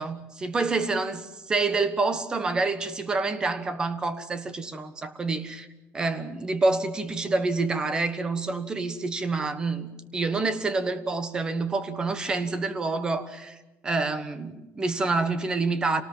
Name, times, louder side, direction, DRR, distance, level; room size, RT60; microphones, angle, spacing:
voice 1, 0.0-5.7 5.9-13.6 13.8-16.0, right 3 dB, 15° right, 1.3 m, -27 dB
27.5 x 19.0 x 7.4 m
cardioid pair, 165°, 5 cm